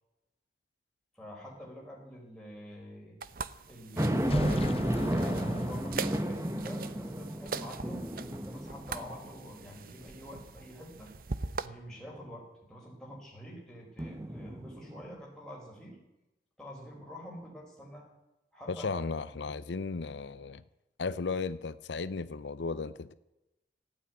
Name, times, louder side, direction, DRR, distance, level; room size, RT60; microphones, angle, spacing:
voice 1, 1.1-3.2 3.7-11.1 11.6-16.0 16.6-18.1 18.5-19.3, equal, 5° left, -3 dB, 4.5 m, -47 dB
sound 1, 3.2-11.7, right 4 dB, 55° right, 0.7 m, -41 dB
sound 2, 4.0-9.5 10.0-10.1 14.0-15.1, right 1 dB, 15° right, 1.0 m, -32 dB
sound 3, 4.2-6.3, left 3 dB, 35° left, 0.6 m, -43 dB
voice 2, 18.7-20.6 21.0-23.1, left 4 dB, 85° left, 15 dB, 0.6 m, -35 dB
15.0 x 9.3 x 9.4 m, 0.96 s
head